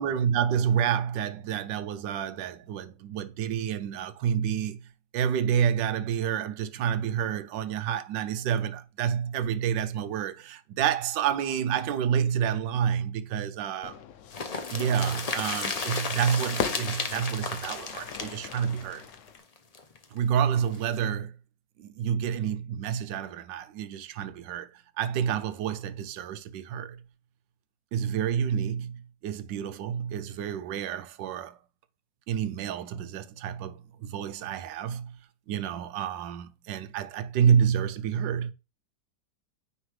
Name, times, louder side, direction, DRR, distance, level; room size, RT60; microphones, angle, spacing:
voice 1, 0.0-4.8 5.1-14.0 14.7-19.0 20.1-21.3 21.8-27.0 27.9-31.6 32.3-35.2 35.5-38.5, right 8 dB, 85° right, 1.3 m, -29 dB
Fire / Fireworks, 13.8-19.4, left 8 dB, 85° left, 0.6 m, -40 dB
sound 1, 14.3-20.0 20.4-20.5 20.7-20.8, left 4 dB, 50° left, 0.4 m, -34 dB
9.2 x 3.6 x 3.2 m
omnidirectional pair, 1.9 m